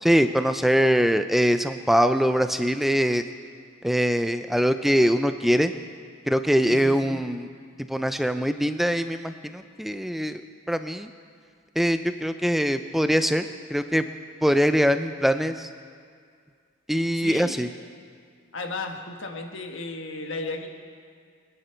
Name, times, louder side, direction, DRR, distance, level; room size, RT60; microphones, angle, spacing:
voice 1, 0.0-3.2 3.8-5.7 6.3-7.5 7.9-10.4 10.7-11.1 11.8-14.0 14.4-15.7 16.9-17.7, equal, ahead, 9 dB, 0.4 m, -22 dB
voice 2, 6.6-7.2 17.1-17.5 18.5-20.7, left 2 dB, 65° left, 3 dB, 1.5 m, -34 dB
25.0 x 9.9 x 4.5 m, 2.1 s
head